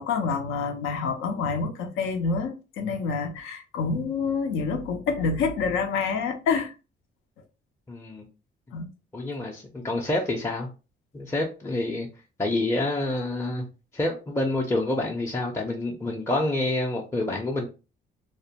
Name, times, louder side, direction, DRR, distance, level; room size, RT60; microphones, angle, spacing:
voice 1, 0.0-6.7 8.7-8.9, left 5 dB, 90° left, 0.5 m, -27 dB
voice 2, 7.9-8.3 9.1-10.7 11.1-12.1 12.4-13.7 13.9-17.7, left 2 dB, 15° left, 0.5 m, -27 dB
2.4 x 2.1 x 2.8 m
cardioid pair, 90°, 20 cm